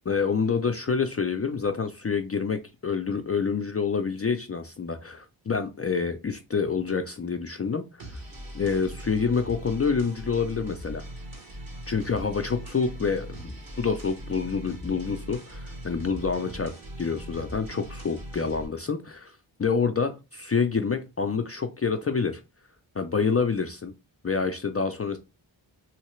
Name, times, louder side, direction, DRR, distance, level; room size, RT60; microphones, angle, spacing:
voice 1, 0.1-7.8 8.1-8.2 8.5-11.0 11.9-16.7 17.0-19.3 19.6-22.4 23.0-23.9 24.2-25.2, left 5 dB, 30° left, 5 dB, 0.4 m, -27 dB
sound 1, 8.0-18.7, right 1 dB, 45° right, 1.2 m, -40 dB
3.1 x 2.8 x 3.1 m, 0.27 s
cardioid pair, 45°, 49 cm